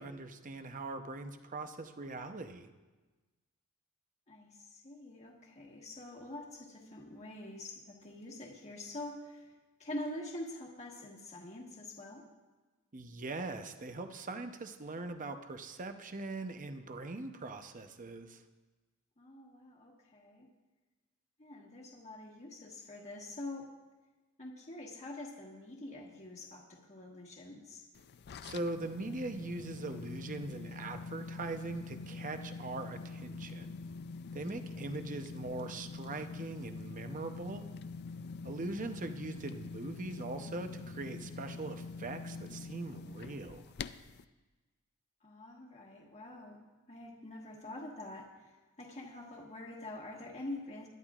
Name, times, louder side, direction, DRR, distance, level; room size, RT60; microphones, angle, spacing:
voice 1, 0.0-2.7 12.9-18.4 28.4-33.8 34.3-37.7 38.4-43.7, right 2 dB, 40° right, 7 dB, 0.8 m, -41 dB
voice 2, 4.3-9.5 9.8-12.3 19.2-20.5 21.4-23.7 24.4-27.9 34.5-35.1 38.7-39.1 45.2-50.9, left 1 dB, 35° left, -3 dB, 1.4 m, -46 dB
sound 1, 28.0-44.2, left 4 dB, 50° left, 0.4 m, -45 dB
21.0 x 11.5 x 2.5 m, 1.2 s
head